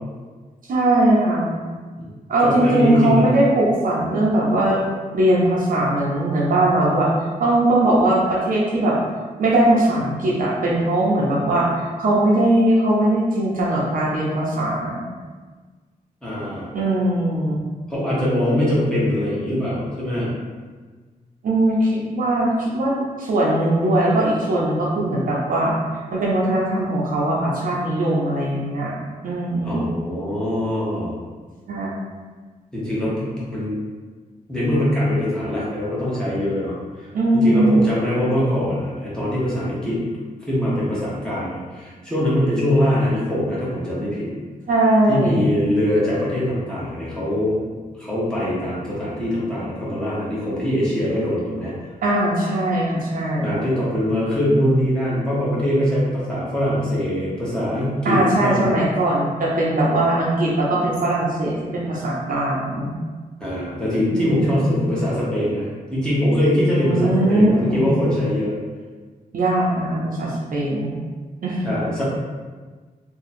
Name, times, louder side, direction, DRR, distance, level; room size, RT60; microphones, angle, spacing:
voice 1, 0.7-1.5 2.3-4.8 5.1-7.1 7.4-9.0 9.4-15.0 16.7-17.6 21.4-25.7 26.1-28.9 29.2-29.9 31.7-32.0 37.1-37.9 44.7-45.5 52.0-53.6 58.0-62.9 64.1-64.8 66.8-67.8 69.3-70.9 71.4-71.7, right 1 dB, 70° right, -5 dB, 0.8 m, -20 dB
voice 2, 2.4-3.3 16.2-16.7 17.9-20.3 29.6-31.1 32.7-33.8 34.5-40.0 40.5-44.3 45.1-47.6 48.0-51.7 53.4-58.7 63.4-68.6 71.6-72.0, equal, 5° left, -9 dB, 1.0 m, -22 dB
2.8 x 2.3 x 4.1 m, 1.4 s
wide cardioid pair, 145°, 15 cm